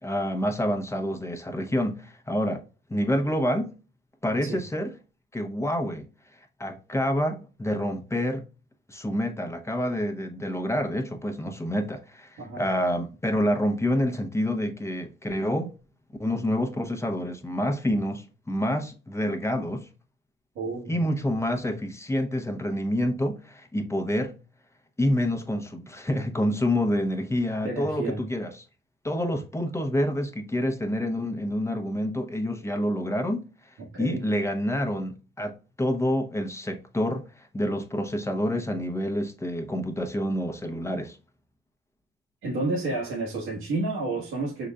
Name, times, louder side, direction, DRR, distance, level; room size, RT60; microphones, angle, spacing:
voice 1, 0.0-2.6 2.9-3.7 4.2-4.9 5.3-6.1 6.6-8.5 8.9-15.7 16.2-19.9 20.9-24.3 25.0-28.6 29.0-33.5 34.0-41.2, equal, 15° left, 0.8 m, -27 dB
voice 2, 20.5-21.0 27.6-28.2 33.9-34.2 42.4-44.7, right 2 dB, 85° right, 1.3 m, -30 dB
5.3 x 3.9 x 2.3 m
cardioid pair, 90°, 20 cm